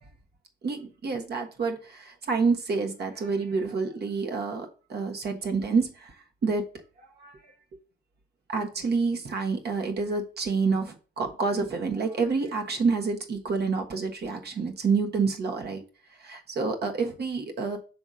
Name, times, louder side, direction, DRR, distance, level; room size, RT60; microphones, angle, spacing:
voice 1, 0.6-6.1 6.4-6.7 7.2-7.4 8.5-15.8 16.2-17.8, right 4 dB, 55° right, 1.5 m, -28 dB
6.3 x 3.4 x 5.6 m
cardioid pair, 90°, 20 cm